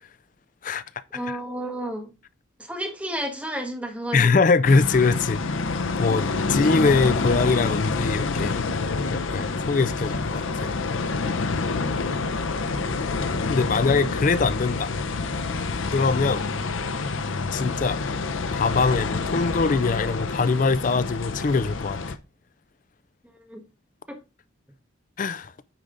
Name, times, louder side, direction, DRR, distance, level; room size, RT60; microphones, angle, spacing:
voice 1, 1.1-2.1 2.6-4.3 23.3-23.6, right 1 dB, 5° right, 1.4 m, -32 dB
voice 2, 4.1-8.5 9.1-10.8 13.5-14.9 15.9-16.4 17.5-18.0 18.5-22.0 25.2-25.5, left 4 dB, 40° left, 0.4 m, -23 dB
sound 1, 4.6-22.2, left 3 dB, 85° left, 0.7 m, -27 dB
9.0 x 4.9 x 3.9 m
head